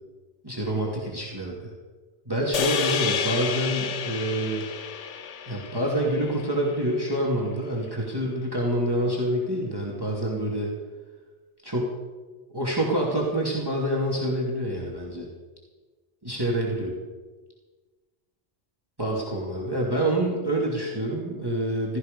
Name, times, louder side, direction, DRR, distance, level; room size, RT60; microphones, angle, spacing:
voice 1, 0.4-1.7 2.3-4.7 5.5-10.7 11.6-11.9 12.5-15.3 16.2-16.9 19.0-22.0, right 1 dB, 20° right, -2 dB, 2.7 m, -27 dB
sound 1, 2.5-6.9, left 6 dB, 80° left, 1.2 m, -30 dB
16.5 x 14.5 x 5.4 m, 1.3 s
omnidirectional pair, 1.2 m